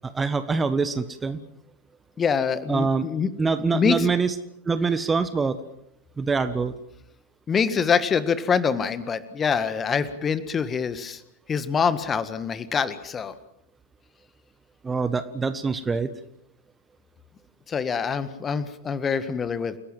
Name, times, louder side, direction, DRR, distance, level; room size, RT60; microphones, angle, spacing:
voice 1, 0.0-1.4 2.7-3.1 3.4-4.3 4.6-5.6 6.2-6.7 14.8-16.1, right 4 dB, 15° right, 12 dB, 1.4 m, -24 dB
voice 2, 2.2-3.3 3.7-4.1 7.5-11.2 11.5-13.3 17.7-19.8, left 6 dB, 20° left, 13 dB, 1.7 m, -25 dB
29.5 x 18.0 x 7.5 m, 0.77 s
figure-of-eight pair, 90°, 0 cm